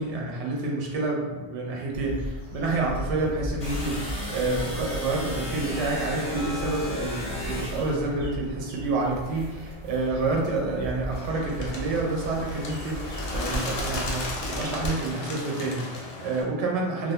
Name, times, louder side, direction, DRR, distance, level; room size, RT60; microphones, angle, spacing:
voice 1, 0.0-17.1, right 2 dB, 90° right, -2 dB, 0.9 m, -28 dB
sound 1, 1.9-14.9, equal, 50° right, 0.9 m, -37 dB
sound 2, 3.6-8.0, left 1 dB, 40° left, 0.8 m, -34 dB
Bird, 11.1-16.4, left 2 dB, 75° left, 0.8 m, -34 dB
2.2 x 2.1 x 2.7 m, 1.2 s
omnidirectional pair, 1.2 m